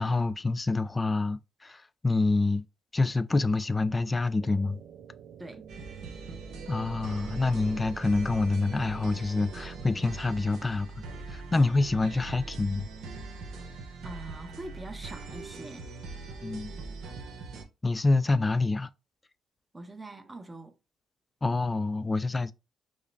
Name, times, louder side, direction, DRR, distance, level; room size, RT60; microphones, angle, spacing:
voice 1, 0.0-2.6 2.9-4.8 6.7-10.9 11.3-12.9 16.4-16.7 17.8-18.9 21.4-22.5, left 3 dB, 20° left, 0.3 m, -27 dB
sound 1, 4.4-10.1, right 7 dB, 65° right, 0.3 m, -48 dB
sound 2, 5.7-17.6, right 3 dB, 85° right, 0.9 m, -42 dB
voice 2, 14.0-15.9 19.7-20.7, right 2 dB, 15° right, 0.7 m, -43 dB
4.8 x 2.0 x 2.7 m
cardioid pair, 90°, 0 cm